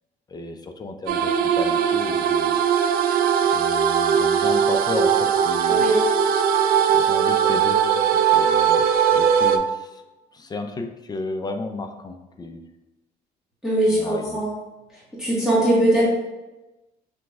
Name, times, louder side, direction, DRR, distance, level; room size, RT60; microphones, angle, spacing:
voice 1, 0.3-2.6 3.5-5.9 6.9-10.0 10.3-12.6 13.9-14.4, left 2 dB, 25° left, 6 dB, 0.4 m, -33 dB
sound 1, 1.1-9.6, right 8 dB, 65° right, 0.4 m, -19 dB
voice 2, 5.7-6.0 13.6-14.5 15.2-16.0, right 1 dB, 5° right, -9 dB, 1.4 m, -20 dB
5.8 x 3.0 x 2.3 m, 1.1 s
cardioid pair, 110°, 17 cm